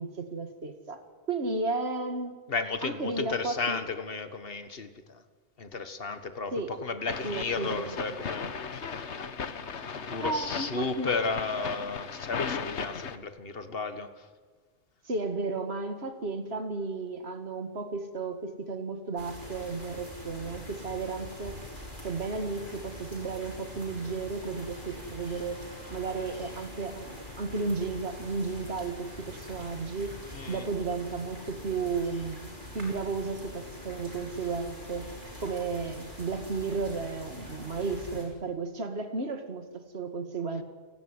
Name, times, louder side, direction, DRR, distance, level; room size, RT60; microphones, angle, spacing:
voice 1, 0.0-2.4 2.8-3.8 6.5-6.7 7.2-8.0 10.2-11.1 15.0-21.6 22.0-25.6 25.9-30.2 30.5-35.1 35.4-40.6, right 4 dB, 65° right, 8 dB, 2.3 m, -33 dB
voice 2, 2.5-5.2 5.6-8.5 9.9-14.3 30.3-30.7, left 4 dB, 55° left, 10 dB, 1.8 m, -34 dB
sound 1, 7.1-13.2, left 5 dB, 85° left, 1.6 m, -36 dB
sound 2, 19.2-38.3, left 1 dB, 45° right, 6.0 m, -44 dB
29.5 x 18.5 x 9.8 m, 1.5 s
omnidirectional pair, 1.1 m